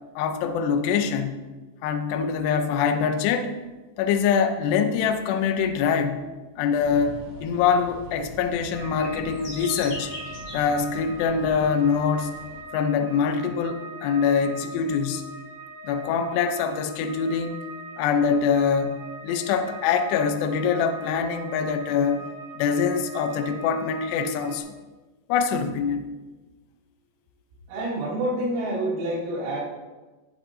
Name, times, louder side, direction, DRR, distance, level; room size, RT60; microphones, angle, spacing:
voice 1, 0.2-1.4 1.8-3.6 4.0-6.2 6.6-10.1 10.5-12.3 12.7-15.2 15.9-17.6 18.0-19.0 19.2-22.2 22.6-24.7 25.3-26.1, left 6 dB, 85° left, 7 dB, 2.4 m, -24 dB
sound 1, 6.7-12.6, left 1 dB, 40° left, 2.0 m, -40 dB
sound 2, 8.7-24.6, right 1 dB, 60° right, 2.9 m, -42 dB
voice 2, 27.7-29.6, right 1 dB, 85° right, -7 dB, 5.4 m, -27 dB
18.5 x 7.2 x 2.7 m, 1.2 s
omnidirectional pair, 5.8 m